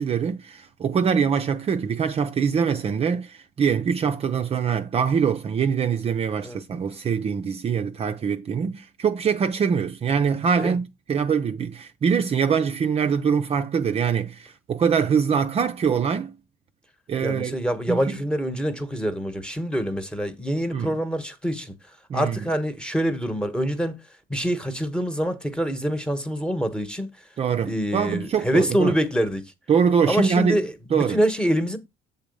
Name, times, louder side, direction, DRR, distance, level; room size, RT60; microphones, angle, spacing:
voice 1, 0.0-16.3 17.1-17.6 17.9-18.2 20.7-21.0 22.1-22.5 27.4-29.0 29.7-30.6 30.9-31.2, right 6 dB, 35° right, 0.6 m, -23 dB
voice 2, 17.2-21.7 22.1-24.0 24.3-27.1 27.6-29.5 30.1-31.8, equal, 5° left, 1.2 m, -25 dB
7.2 x 4.0 x 5.3 m
cardioid pair, 110°, 17 cm